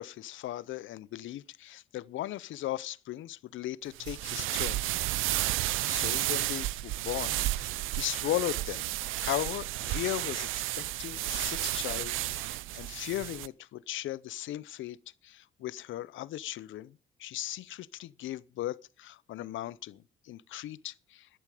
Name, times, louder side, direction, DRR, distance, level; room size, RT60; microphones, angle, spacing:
voice 1, 0.0-4.8 5.8-8.8 9.1-15.0 15.2-21.3, left 14 dB, 75° left, 0.7 m, -37 dB
sound 1, 4.0-13.5, right 16 dB, 85° right, 0.5 m, -32 dB
12.0 x 11.0 x 4.9 m
cardioid pair, 90°, 20 cm